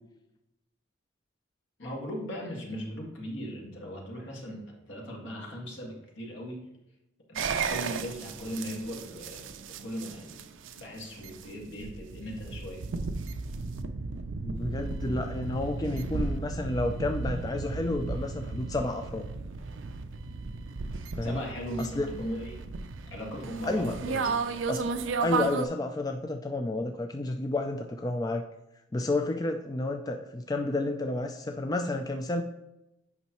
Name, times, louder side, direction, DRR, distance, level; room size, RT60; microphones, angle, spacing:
voice 1, 1.8-6.7 7.3-10.4 10.8-12.9 21.2-22.6 23.1-24.3, equal, 65° left, -1 dB, 1.9 m, -38 dB
sound 1, 7.4-25.7, right 4 dB, 75° right, 0.5 m, -34 dB
voice 2, 14.4-19.3 21.1-21.4 21.8-22.1 23.7-24.0 24.7-24.9 25.2-28.5 28.9-32.4, left 2 dB, 20° left, 5 dB, 0.3 m, -31 dB
8.4 x 5.3 x 3.0 m, 0.90 s
head